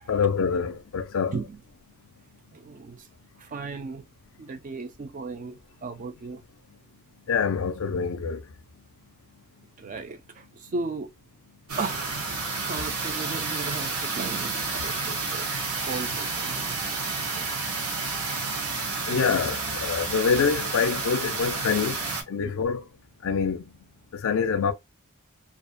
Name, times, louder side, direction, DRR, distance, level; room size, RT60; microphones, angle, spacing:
voice 1, 0.1-1.3 7.3-8.4 14.8-14.9 19.1-22.0 22.3-22.8 23.2-23.7 24.1-24.7, left 6 dB, 65° left, 0.4 m, -25 dB
voice 2, 2.5-3.1 3.4-4.1 4.4-6.4 9.8-11.1 11.8-12.4 12.6-15.5 15.8-16.7 17.3-17.5 22.4-22.5, right 4 dB, 35° right, 0.4 m, -36 dB
sound 1, 11.7-22.2, right 4 dB, 80° right, 0.8 m, -30 dB
2.4 x 2.1 x 2.5 m
head